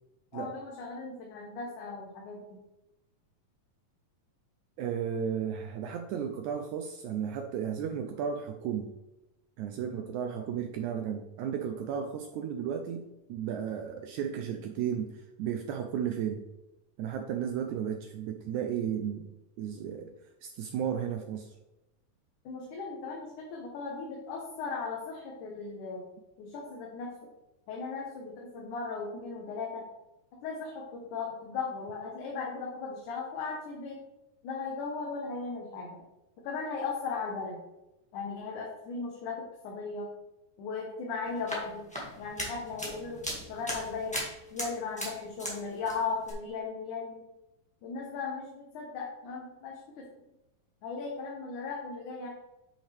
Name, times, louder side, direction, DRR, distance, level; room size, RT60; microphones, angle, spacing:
voice 1, 0.3-2.6 9.8-10.0 22.5-26.0 26.4-27.1 27.7-29.9 30.4-34.0 34.4-36.0 36.4-37.6 38.1-40.1 40.6-41.8 42.2-43.2 43.5-44.2 44.5-47.2 47.8-50.0 50.8-52.3, left 4 dB, 70° left, -2 dB, 2.4 m, -37 dB
voice 2, 4.8-8.9 9.6-16.4 17.0-19.3 19.6-20.1 20.4-21.5, right 8 dB, 80° right, 5 dB, 1.7 m, -34 dB
sound 1, 41.3-45.6 45.8-46.3, equal, 5° left, 0.8 m, -38 dB
8.5 x 5.7 x 3.4 m, 0.94 s
omnidirectional pair, 4.0 m